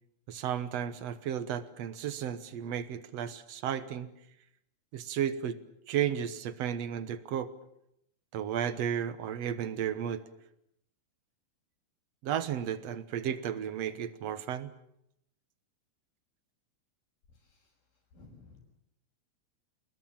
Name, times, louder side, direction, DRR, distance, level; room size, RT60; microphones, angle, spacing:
voice 1, 0.3-4.1 4.9-5.6 5.9-7.5 8.3-10.2 12.2-14.7, right 9 dB, 60° right, 12 dB, 1.8 m, -33 dB
voice 2, 18.1-18.6, left 3 dB, 75° left, -4 dB, 7.1 m, -55 dB
29.0 x 21.0 x 7.5 m, 0.78 s
omnidirectional pair, 4.2 m